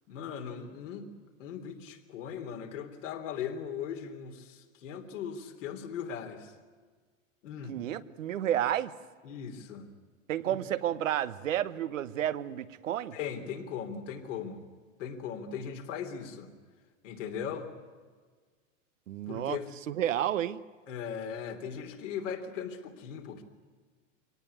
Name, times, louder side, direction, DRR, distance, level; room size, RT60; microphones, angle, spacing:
voice 1, 0.1-1.1 1.4-6.5 7.4-7.8 9.2-9.9 10.5-10.6 13.1-14.6 15.0-16.5 17.0-17.7 19.3-19.7 20.9-23.4, left 7 dB, 75° left, 3 dB, 3.4 m, -38 dB
voice 2, 7.6-8.9 10.3-13.2 19.1-19.6 19.9-20.6, right 11 dB, 80° right, 13 dB, 1.1 m, -31 dB
24.0 x 18.5 x 9.7 m, 1.5 s
hypercardioid pair, 95°, 38 cm